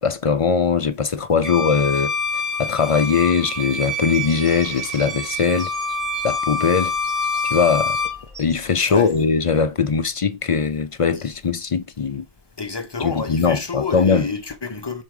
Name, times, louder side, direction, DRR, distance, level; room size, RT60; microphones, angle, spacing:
voice 1, 0.0-2.1 2.6-5.7 6.2-6.9 7.4-8.0 8.4-12.2 13.0-14.3, left 5 dB, 45° left, 0.5 m, -20 dB
Bowed string instrument, 1.4-8.2, left 2 dB, 20° right, 1.2 m, -26 dB
Bird vocalization bird call bird song, 4.1-9.2, equal, 45° right, 4.5 m, -44 dB
voice 2, 12.6-15.0, left 5 dB, 25° left, 0.8 m, -28 dB
6.2 x 5.3 x 4.8 m
omnidirectional pair, 1.0 m